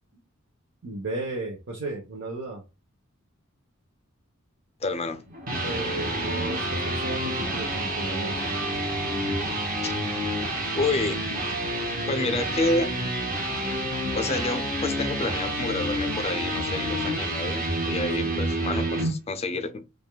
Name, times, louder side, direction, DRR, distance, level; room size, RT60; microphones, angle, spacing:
voice 1, 0.8-2.6 5.6-8.4 18.2-18.4, right 2 dB, 60° right, 0.9 m, -34 dB
voice 2, 4.8-5.2 9.8-9.9 10.8-11.2 12.1-12.9 14.1-19.8, left 2 dB, 30° left, 0.5 m, -29 dB
sound 1, 5.2-19.1, right 1 dB, 40° right, 1.5 m, -28 dB
5.1 x 2.4 x 2.3 m
head